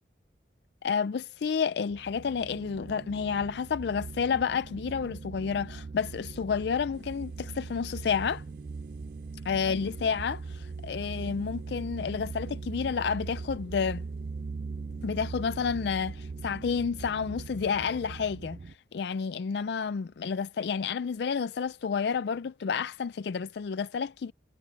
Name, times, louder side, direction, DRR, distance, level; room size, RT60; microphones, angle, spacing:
voice 1, 0.8-8.4 9.5-14.0 15.0-18.6 18.9-24.3, left 6 dB, 65° left, 0.4 m, -30 dB
sound 1, 1.9-18.7, right 4 dB, 40° right, 0.3 m, -40 dB
sound 2, 6.9-17.1, equal, 65° right, 5.2 m, -57 dB
head